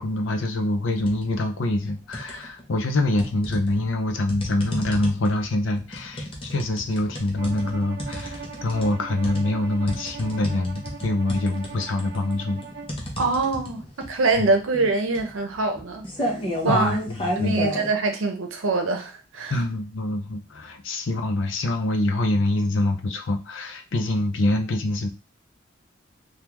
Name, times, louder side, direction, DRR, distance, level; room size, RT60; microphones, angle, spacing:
voice 1, 0.0-12.6 14.4-14.5 16.7-17.7 19.5-25.1, left 2 dB, 75° left, 0.6 m, -25 dB
sound 1, 0.9-1.3 1.7-2.6 3.2-17.9, equal, 25° left, 0.7 m, -32 dB
Bowed string instrument, 7.4-13.0, right 5 dB, 50° right, 0.5 m, -40 dB
voice 2, 13.2-16.3 16.6-17.0 17.4-19.5, right 3 dB, 90° right, 0.7 m, -24 dB
3.5 x 2.3 x 2.9 m
head